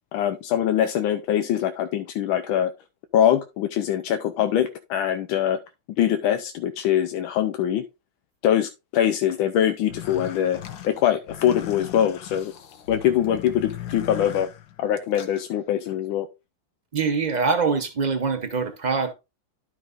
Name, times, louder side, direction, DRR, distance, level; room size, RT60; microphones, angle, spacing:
voice 1, 0.1-2.7 3.1-5.6 6.0-7.8 8.4-12.5 12.9-14.5 14.8-16.3, left 10 dB, 90° left, 1.5 m, -23 dB
sound 1, 9.8-15.4, left 10 dB, 70° left, 1.6 m, -38 dB
voice 2, 16.9-19.1, right 5 dB, 80° right, 0.4 m, -24 dB
12.0 x 5.9 x 2.5 m
omnidirectional pair, 2.1 m